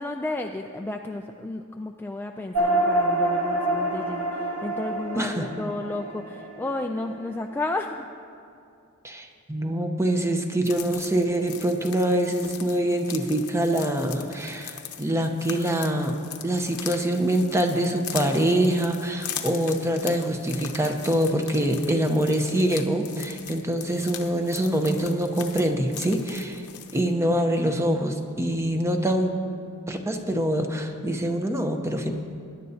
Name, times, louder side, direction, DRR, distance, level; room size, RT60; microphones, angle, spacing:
voice 1, 0.0-8.1, left 2 dB, 10° left, 3 dB, 0.3 m, -32 dB
sound 1, 2.5-7.3, right 1 dB, 80° right, 1.7 m, -26 dB
voice 2, 5.1-5.5 9.0-16.1 16.4-26.6 26.9-29.3 29.9-32.1, right 1 dB, 15° right, 5 dB, 0.8 m, -25 dB
sound 2, 10.6-27.1, left 9 dB, 90° left, 0.9 m, -40 dB
21.5 x 10.5 x 2.8 m, 2.5 s
head